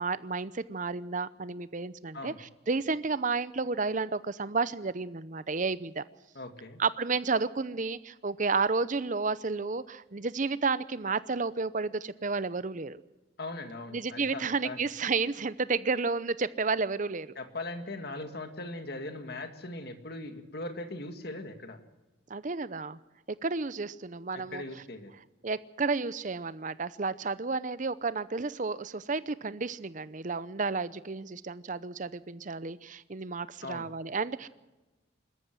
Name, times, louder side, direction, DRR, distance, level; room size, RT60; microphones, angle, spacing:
voice 1, 0.0-6.0 6.8-13.0 13.9-17.3 22.3-23.0 23.4-24.6 25.4-34.5, right 4 dB, 40° right, 16 dB, 0.7 m, -31 dB
voice 2, 6.4-6.8 13.4-14.8 17.4-21.8 24.3-25.1 33.6-33.9, left 2 dB, 55° left, 7 dB, 2.0 m, -40 dB
25.0 x 13.5 x 7.7 m, 1.1 s
head